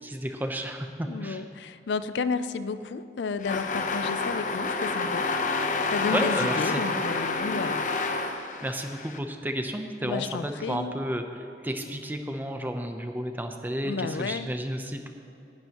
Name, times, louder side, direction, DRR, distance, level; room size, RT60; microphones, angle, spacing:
voice 1, 0.0-1.4 6.1-6.8 8.6-11.2 11.6-15.1, equal, 10° right, 5 dB, 0.7 m, -32 dB
voice 2, 1.1-5.3 5.6-7.8 10.0-10.9 13.8-14.5, left 5 dB, 80° left, 13 dB, 0.4 m, -32 dB
sound 1, 3.4-9.2, left 3 dB, 45° left, 0.8 m, -28 dB
19.0 x 11.0 x 3.0 m, 2.8 s
head